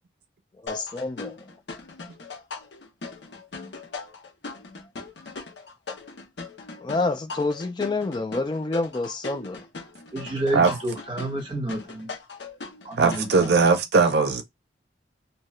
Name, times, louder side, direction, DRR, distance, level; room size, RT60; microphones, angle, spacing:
voice 1, 0.6-1.4 6.8-9.6, left 3 dB, 25° left, 0.3 m, -28 dB
sound 1, 0.7-13.7, left 3 dB, 75° left, 0.7 m, -39 dB
voice 2, 10.1-12.1 12.8-13.6, right 1 dB, 25° right, 1.0 m, -30 dB
voice 3, 13.0-14.4, right 4 dB, 65° right, 0.5 m, -19 dB
2.8 x 2.3 x 3.0 m
head